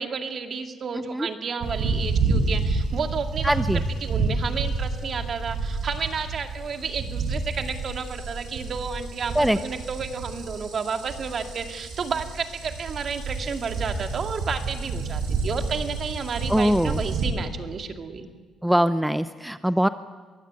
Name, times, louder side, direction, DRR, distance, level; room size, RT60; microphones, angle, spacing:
voice 1, 0.0-18.3, right 5 dB, 50° right, 5 dB, 2.2 m, -31 dB
voice 2, 0.9-1.3 3.4-3.8 9.3-9.6 16.5-17.0 18.6-19.9, equal, 5° right, 11 dB, 0.7 m, -22 dB
sound 1, 1.6-17.3, right 3 dB, 75° right, 6.4 m, -29 dB
22.5 x 16.5 x 9.6 m, 1.5 s
cardioid pair, 90°, 0 cm